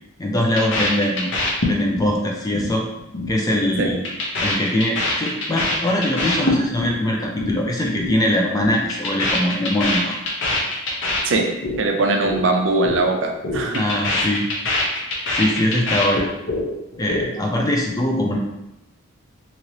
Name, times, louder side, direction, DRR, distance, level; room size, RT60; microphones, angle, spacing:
voice 1, 0.2-1.3 1.7-2.9 3.3-4.0 4.4-10.2 13.8-14.5 15.3-16.3 17.0-18.4, left 1 dB, 15° left, 0 dB, 0.3 m, -22 dB
sound 1, 0.6-2.1 2.4-2.7 3.0-3.3 3.6-7.0 7.2-7.6 7.8-8.2 8.4-11.8 12.1-12.4 12.7-13.0 13.3-16.7 16.9-17.6, left 2 dB, 55° left, 0.7 m, -24 dB
voice 2, 11.8-13.8, right 3 dB, 60° right, 3 dB, 0.4 m, -20 dB
3.0 x 2.9 x 2.7 m, 0.90 s
head